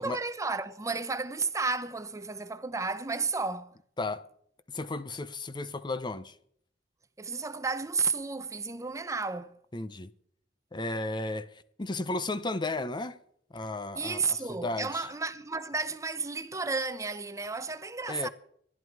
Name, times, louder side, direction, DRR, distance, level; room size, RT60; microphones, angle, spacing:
voice 1, 0.0-3.7 7.2-9.6 14.0-18.3, right 4 dB, 20° right, 0.7 m, -32 dB
voice 2, 4.7-6.4 9.7-10.1 10.7-13.2 13.5-14.2 14.5-15.0 18.1-18.3, left 2 dB, 25° left, 0.7 m, -34 dB
26.5 x 11.0 x 4.7 m
head